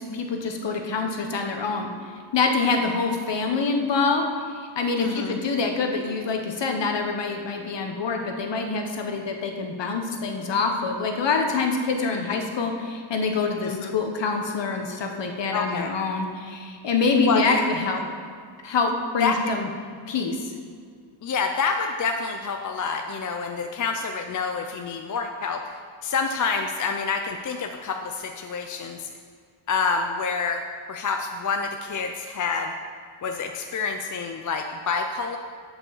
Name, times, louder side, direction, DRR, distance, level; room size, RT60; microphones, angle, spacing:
voice 1, 0.0-1.9 2.3-4.3 4.5-18.0 18.6-19.7 20.1-20.5, left 4 dB, 60° left, 3 dB, 1.1 m, -25 dB
voice 2, 5.0-5.4 12.1-12.5 13.6-13.9 15.5-15.9 17.3-17.7 19.2-19.4 21.2-29.1 29.7-30.6 30.9-32.7 33.2-35.4, left 5 dB, 40° left, 4 dB, 0.5 m, -28 dB
7.0 x 5.4 x 7.1 m, 2.1 s
wide cardioid pair, 145°, 48 cm